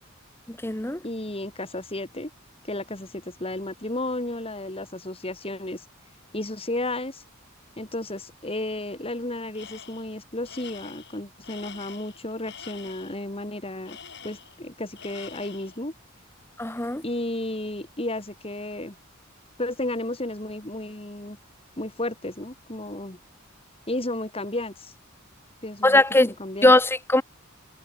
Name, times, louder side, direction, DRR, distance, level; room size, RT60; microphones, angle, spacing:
voice 1, 0.5-1.0 16.6-17.0 25.8-26.3 26.6-27.2, left 1 dB, 10° left, 1.2 m, -20 dB
voice 2, 1.0-2.3 2.6-5.8 6.3-7.2 7.8-14.0 14.2-15.9 17.0-19.0 19.6-21.4 21.8-23.2 23.9-24.9 25.6-26.7, left 1 dB, 30° left, 3.7 m, -33 dB
Tools, 9.5-10.1 10.4-13.2 13.8-14.7 15.0-15.8, left 7 dB, 55° left, 7.7 m, -45 dB
head